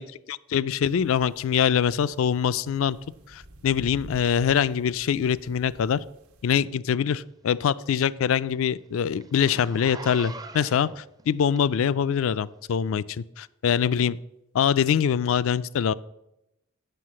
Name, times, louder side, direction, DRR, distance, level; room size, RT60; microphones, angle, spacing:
voice 1, 0.3-3.0 3.3-6.0 6.4-14.2 14.5-15.9, left 8 dB, 60° left, 19 dB, 0.3 m, -24 dB
sound 1, 0.8-6.5, right 1 dB, 90° right, 1.1 m, -49 dB
Zipper (clothing), 7.1-12.0 12.6-12.7, right 3 dB, 15° right, 0.4 m, -43 dB
7.7 x 6.2 x 7.5 m, 0.86 s
head